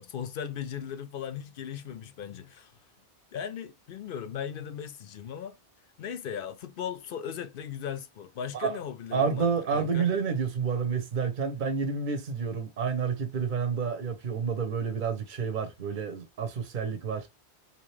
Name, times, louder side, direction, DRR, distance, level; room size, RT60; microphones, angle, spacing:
voice 1, 0.0-2.7 3.3-5.6 6.0-10.1, left 8 dB, 65° left, 0.7 m, -37 dB
voice 2, 9.1-17.3, right 6 dB, 55° right, 0.9 m, -29 dB
3.6 x 2.9 x 3.1 m
omnidirectional pair, 1.1 m